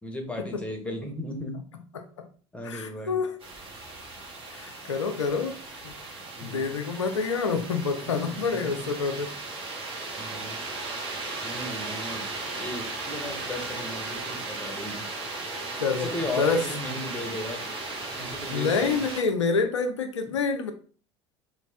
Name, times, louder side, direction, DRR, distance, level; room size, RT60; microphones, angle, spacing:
voice 1, 0.0-1.6 2.5-3.2 6.4-6.8 8.0-8.9 10.2-10.6 11.4-15.1 15.9-17.7 18.1-19.1 20.3-20.4, left 1 dB, 10° left, 2 dB, 0.9 m, -36 dB
voice 2, 1.9-2.3 2.6-3.4 4.5-5.6 5.8-5.9 6.4-9.3 15.8-16.1 16.4-16.6 18.5-20.7, left 5 dB, 75° left, 7 dB, 0.5 m, -27 dB
sound 1, 3.4-19.2, right 3 dB, 35° right, 1.1 m, -36 dB
3.1 x 2.3 x 3.3 m, 0.41 s
figure-of-eight pair, 65°, 15 cm